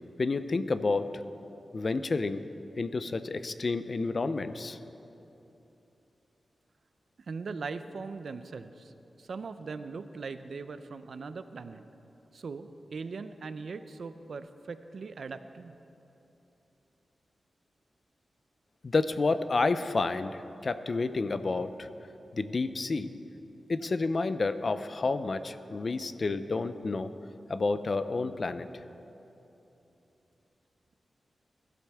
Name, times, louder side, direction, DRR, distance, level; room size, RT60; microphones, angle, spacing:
voice 1, 0.2-1.1 1.7-2.4 2.8-4.8 18.8-21.9 22.3-23.1 23.7-27.1 27.5-28.7, left 3 dB, 50° left, 11 dB, 0.6 m, -30 dB
voice 2, 7.3-8.9 9.2-11.8 12.3-15.8, right 4 dB, 70° right, 10 dB, 0.6 m, -40 dB
21.0 x 12.0 x 3.6 m, 3.0 s
wide cardioid pair, 85°, 0 cm